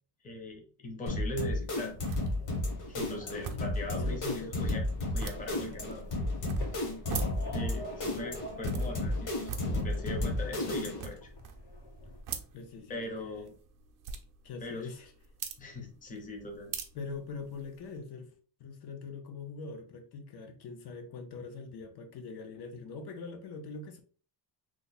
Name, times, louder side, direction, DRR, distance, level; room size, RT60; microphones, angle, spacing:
voice 1, 0.2-1.9 2.9-4.8 5.1-6.1 6.7-6.8 7.5-11.3 12.9-13.5 14.6-14.9 15.6-16.7, left 1 dB, 20° left, 2 dB, 0.6 m, -40 dB
sound 1, 1.1-11.2, left 1 dB, 50° left, 1.0 m, -33 dB
sound 2, 1.5-18.0, right 6 dB, 50° right, 0.5 m, -46 dB
sound 3, 1.9-12.2, equal, 90° left, 1.7 m, -47 dB
voice 2, 4.0-4.6 12.5-13.5 14.4-15.1 16.9-18.3 18.6-24.0, left 4 dB, 65° left, 6 dB, 0.7 m, -43 dB
3.1 x 2.1 x 3.9 m, 0.40 s
cardioid pair, 170°, 41 cm